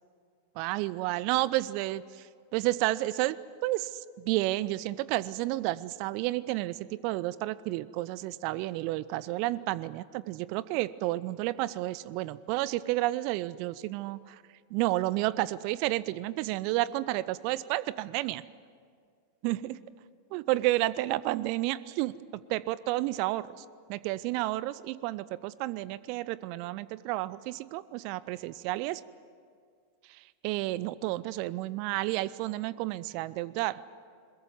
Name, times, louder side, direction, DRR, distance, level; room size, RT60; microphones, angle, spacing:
voice 1, 0.6-3.4 3.6-14.4 14.7-18.4 19.4-19.8 20.3-29.0 30.0-33.8, right 17 dB, 45° right, 20 dB, 0.6 m, -31 dB
22.0 x 21.5 x 9.3 m, 2.1 s
figure-of-eight pair, 90°, 0 cm